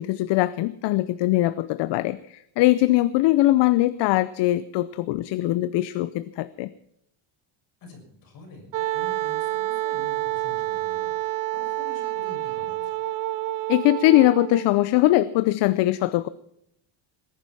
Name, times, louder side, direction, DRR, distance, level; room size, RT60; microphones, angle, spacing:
voice 1, 0.0-6.7 13.7-16.3, left 16 dB, 60° left, 15 dB, 0.7 m, -21 dB
voice 2, 7.8-13.0, left 1 dB, 45° left, 2 dB, 6.7 m, -47 dB
Wind instrument woodwind instrument, 8.7-14.7, right 16 dB, 45° right, 0.7 m, -28 dB
19.5 x 11.0 x 5.9 m, 0.74 s
cardioid pair, 170°, 48 cm